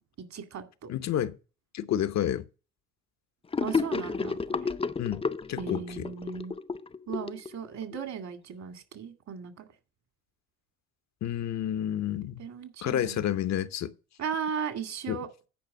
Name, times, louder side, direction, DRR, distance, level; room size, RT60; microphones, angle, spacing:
voice 1, 0.3-0.9 3.6-4.7 5.6-6.5 7.1-9.7 12.4-13.2 14.2-15.3, right 6 dB, 65° right, 2.1 m, -36 dB
voice 2, 0.9-1.4 1.7-2.4 5.0-6.1 11.2-12.5 12.8-14.0 15.1-15.2, left 11 dB, 60° left, 0.8 m, -30 dB
Gurgling / Sink (filling or washing), 3.5-8.0, left 5 dB, 20° left, 0.5 m, -31 dB
9.5 x 5.0 x 7.4 m
cardioid pair, 90°, 30 cm